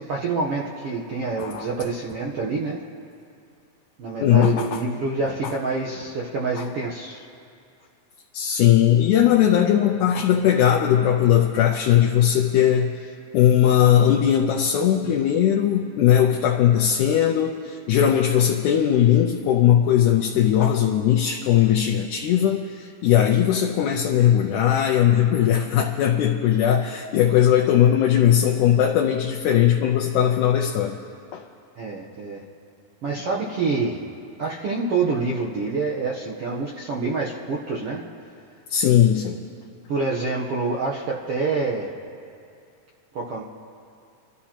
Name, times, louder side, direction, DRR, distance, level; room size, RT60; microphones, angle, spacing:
voice 1, 0.1-2.8 4.0-7.2 31.8-32.4 33.0-34.0 34.4-38.0 39.9-41.9 43.1-43.4, right 4 dB, 80° right, -4 dB, 1.3 m, -27 dB
voice 2, 1.4-1.7 4.2-4.8 6.6-6.7 8.3-31.0 31.3-31.4 38.7-39.4, left 10 dB, 80° left, 1 dB, 2.0 m, -19 dB
29.0 x 12.5 x 2.9 m, 2.4 s
omnidirectional pair, 4.0 m